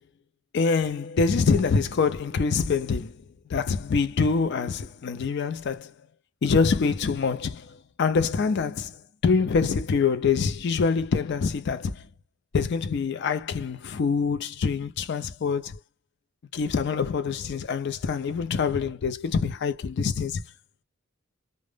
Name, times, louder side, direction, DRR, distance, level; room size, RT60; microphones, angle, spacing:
voice 1, 0.5-3.2 3.5-5.9 6.4-12.1 12.5-15.8 16.5-20.4, left 5 dB, 50° left, 0.4 m, -25 dB
2.0 x 2.0 x 3.2 m
head